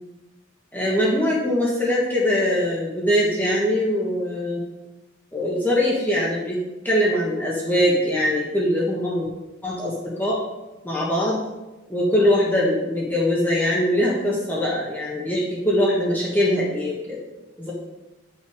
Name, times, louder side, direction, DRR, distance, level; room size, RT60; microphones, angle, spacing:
voice 1, 0.7-4.6 5.3-9.3 9.6-10.4 10.8-11.4 11.9-17.2 17.6-17.7, left 1 dB, 10° left, -6 dB, 1.5 m, -22 dB
10.0 x 5.8 x 5.0 m, 1.0 s
head